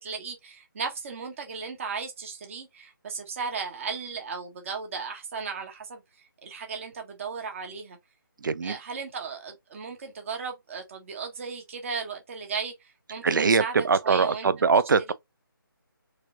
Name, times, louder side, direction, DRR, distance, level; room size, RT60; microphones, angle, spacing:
voice 1, 0.0-6.0 6.4-8.0 8.6-13.7 14.0-14.5, right 5 dB, 35° right, 1.2 m, -35 dB
voice 2, 8.4-8.8 13.2-15.1, right 5 dB, 60° right, 0.4 m, -22 dB
4.1 x 3.1 x 2.5 m
figure-of-eight pair, 155°, 12 cm